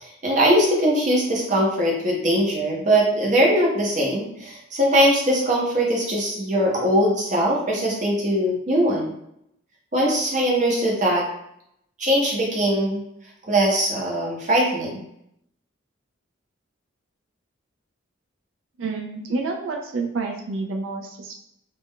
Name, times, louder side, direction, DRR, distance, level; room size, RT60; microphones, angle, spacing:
voice 1, 0.0-9.2 9.9-11.3 12.0-13.0 13.4-14.9, equal, 40° right, -3 dB, 0.7 m, -21 dB
voice 2, 18.8-21.3, right 3 dB, 75° right, 2 dB, 0.4 m, -29 dB
2.4 x 2.1 x 3.5 m, 0.75 s
head